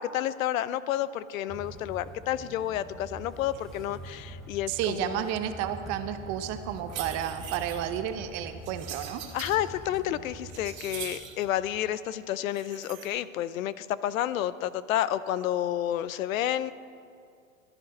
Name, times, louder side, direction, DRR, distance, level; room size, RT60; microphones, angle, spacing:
voice 1, 0.0-5.3 9.3-16.7, left 12 dB, 75° left, 16 dB, 0.6 m, -30 dB
sound 1, 1.5-12.0, equal, ahead, 0.4 m, -45 dB
voice 2, 4.7-9.2, right 10 dB, 40° right, 9 dB, 0.9 m, -31 dB
sound 2, 6.8-7.8 8.6-9.6 10.1-11.4 12.5-13.1, right 9 dB, 80° right, 2.1 m, -42 dB
14.5 x 11.0 x 4.3 m, 2.4 s
hypercardioid pair, 125°, 41 cm